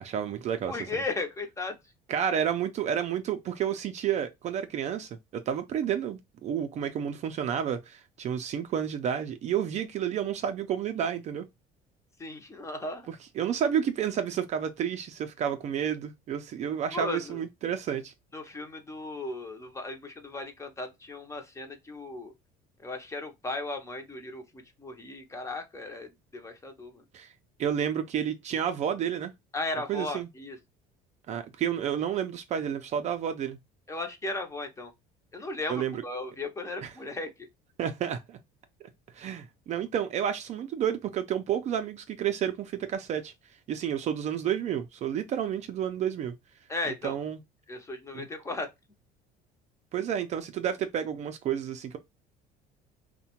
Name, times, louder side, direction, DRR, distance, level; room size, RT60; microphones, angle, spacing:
voice 1, 0.0-0.9 2.1-11.5 13.1-18.1 27.1-27.3 27.6-29.3 29.9-30.3 31.3-33.6 35.7-36.0 36.8-36.9 37.8-38.4 39.1-43.3 43.7-46.3 47.0-47.4 48.1-48.3 49.9-52.0, right 9 dB, 40° right, 0.4 m, -30 dB
voice 2, 0.7-1.8 12.2-13.1 16.9-17.4 18.3-22.3 22.8-27.0 29.5-30.6 33.9-34.9 35.3-37.3 46.7-47.2 47.7-48.7, left 2 dB, 15° left, 0.5 m, -36 dB
2.7 x 2.1 x 2.8 m
cardioid pair, 130°, 18 cm